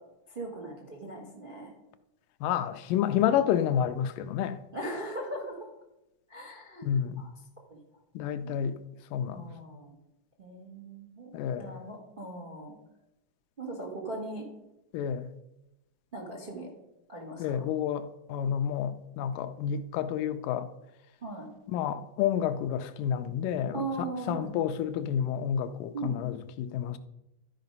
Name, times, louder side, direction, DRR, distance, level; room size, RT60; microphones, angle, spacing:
voice 1, 0.3-1.7 4.7-5.6 6.3-6.9 7.2-7.3 7.7-7.8 8.4-8.6 9.3-9.9 10.4-12.8 13.6-14.4 16.1-16.7 17.1-17.7 21.2-21.5 23.7-24.5 25.9-26.2, right 2 dB, 90° right, 0.4 m, -39 dB
voice 2, 2.4-4.6 6.8-7.3 8.2-8.8 9.1-9.5 11.3-11.8 14.9-15.3 17.4-20.7 21.7-27.0, left 9 dB, 85° left, 2.2 m, -30 dB
13.0 x 5.0 x 5.3 m
omnidirectional pair, 3.8 m